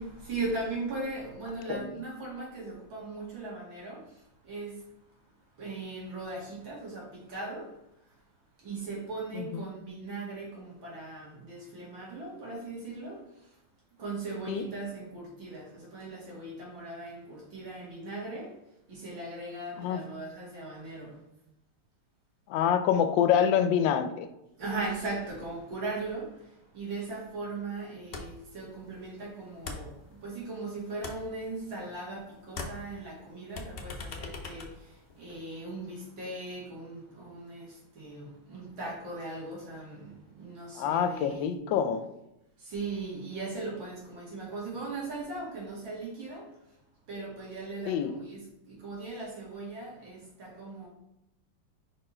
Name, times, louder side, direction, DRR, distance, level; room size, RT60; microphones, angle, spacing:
voice 1, 0.0-4.9 5.6-7.7 8.6-13.6 14.0-18.5 18.9-21.2 24.6-41.5 42.6-46.5 47.1-50.9, right 3 dB, 85° right, 3.0 m, -39 dB
voice 2, 9.4-9.7 14.5-14.6 19.8-20.0 22.5-24.3 40.8-42.1 47.9-48.1, left 8 dB, 80° left, 1.3 m, -26 dB
sound 1, 28.1-28.5 28.8-30.6 30.9-32.2 32.5-35.5, left 3 dB, 60° left, 0.6 m, -42 dB
5.2 x 4.5 x 4.3 m
omnidirectional pair, 2.0 m